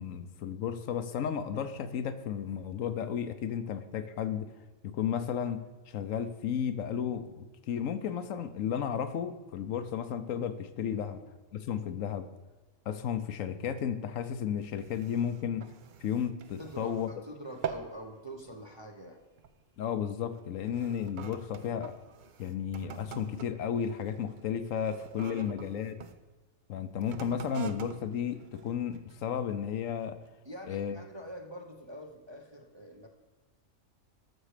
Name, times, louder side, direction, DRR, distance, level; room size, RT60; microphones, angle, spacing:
voice 1, 0.0-4.5 4.8-5.6 5.9-11.2 11.5-12.3 12.9-15.7 16.0-17.1 19.8-21.9 22.4-26.0 26.7-30.2 30.7-31.0, left 8 dB, 75° left, 10 dB, 1.0 m, -33 dB
sound 1, 14.6-17.2 17.5-18.0 18.4-18.7 19.4-19.6 20.3-26.2 26.9-29.3 29.9-30.0, right 7 dB, 60° right, 0.5 m, -44 dB
voice 2, 16.6-19.2 25.4-25.5 30.4-33.1, equal, 25° right, 2 dB, 0.7 m, -45 dB
13.0 x 6.2 x 5.0 m, 1.2 s
omnidirectional pair, 1.4 m